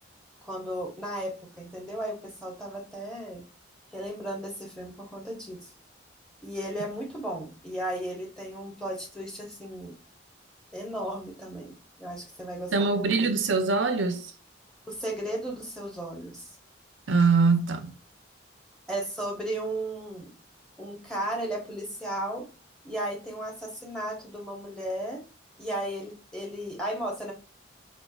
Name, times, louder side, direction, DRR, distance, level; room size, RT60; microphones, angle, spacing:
voice 1, 0.4-3.4 3.9-5.7 6.4-10.0 10.7-13.3 14.9-16.5 18.9-20.3 20.8-22.5 22.8-25.2 25.6-27.3, right 1 dB, 5° left, 1.0 m, -35 dB
voice 2, 12.7-14.3 17.1-17.9, right 4 dB, 80° right, 0.6 m, -23 dB
4.4 x 2.5 x 2.3 m
head